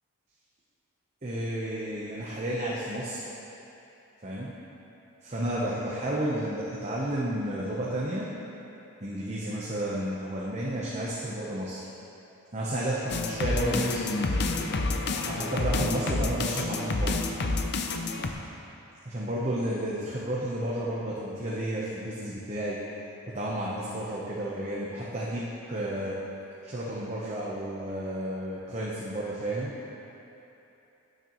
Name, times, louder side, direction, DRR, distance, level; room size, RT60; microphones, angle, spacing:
voice 1, 1.2-3.3 4.2-4.5 5.2-8.3 9.0-11.9 12.5-14.0 15.2-17.3 19.1-22.8 23.3-26.2 26.6-29.7, right 1 dB, 30° right, -5 dB, 0.8 m, -32 dB
sound 1, 13.1-18.3, left 3 dB, 50° left, 0.6 m, -28 dB
16.5 x 6.7 x 3.0 m, 3.0 s
head